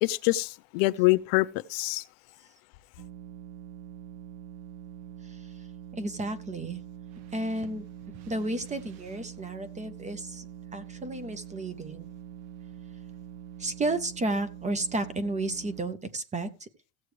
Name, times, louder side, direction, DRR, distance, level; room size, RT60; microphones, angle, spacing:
voice 1, 0.0-2.0, left 20 dB, 80° left, 0.7 m, -25 dB
sound 1, 3.0-15.9, right 11 dB, 55° right, 1.0 m, -44 dB
voice 2, 6.0-6.8 7.3-7.8 8.3-10.5 10.7-12.1 13.6-16.7, right 2 dB, 15° right, 0.5 m, -32 dB
15.5 x 7.9 x 3.2 m
cardioid pair, 175°, 48 cm